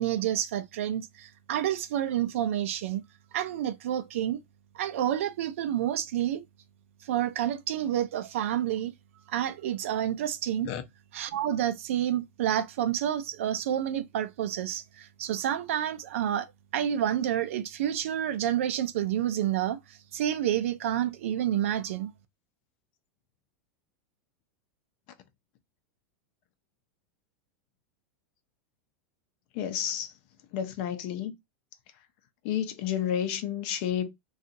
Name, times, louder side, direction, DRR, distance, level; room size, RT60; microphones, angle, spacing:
voice 1, 0.0-3.0 3.3-4.4 4.7-6.4 7.0-8.9 9.3-10.7 11.1-16.5 16.7-22.1, right 11 dB, 80° right, 0.4 m, -29 dB
voice 2, 29.5-30.1 30.5-31.3 32.4-34.1, left 9 dB, 55° left, 0.6 m, -30 dB
2.7 x 2.4 x 2.5 m
supercardioid pair, 125°, 7 cm